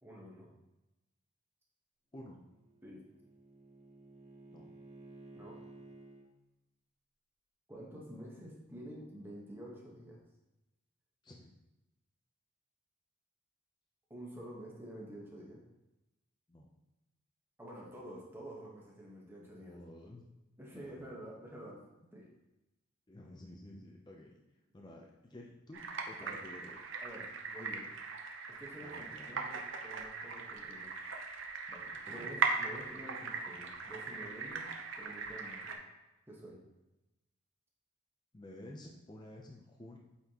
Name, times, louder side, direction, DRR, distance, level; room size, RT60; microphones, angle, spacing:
voice 1, 0.0-0.5 2.8-3.1 5.3-5.6 7.7-10.2 14.1-15.6 17.6-19.8 20.6-21.8 22.1-22.3 26.2-26.4 27.0-27.9 28.5-31.3 31.7-35.8 36.3-36.6, right 1 dB, 10° right, -4 dB, 1.1 m, -49 dB
voice 2, 2.1-2.4 4.5-4.7 11.2-11.5 16.5-16.7 19.5-20.3 20.7-21.1 23.1-24.4 24.7-26.8 28.8-29.5 32.1-32.3 38.3-40.0, left 1 dB, 20° left, 0 dB, 0.5 m, -52 dB
Bowed string instrument, 2.4-6.3, right 2 dB, 35° right, 0.8 m, -55 dB
sound 1, 25.7-35.8, right 4 dB, 65° right, 0.7 m, -39 dB
8.0 x 4.1 x 2.9 m, 1.0 s
head